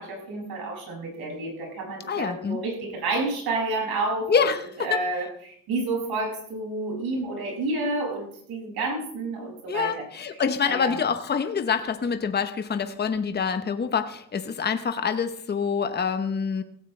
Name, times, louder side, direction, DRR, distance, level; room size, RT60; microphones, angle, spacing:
voice 1, 0.0-4.5 4.8-11.0, right 2 dB, 80° right, 0 dB, 6.7 m, -30 dB
voice 2, 2.1-2.6 4.3-5.1 9.7-16.6, left 6 dB, 25° left, 8 dB, 1.0 m, -26 dB
16.5 x 16.0 x 3.3 m, 0.65 s
cardioid pair, 135°, 37 cm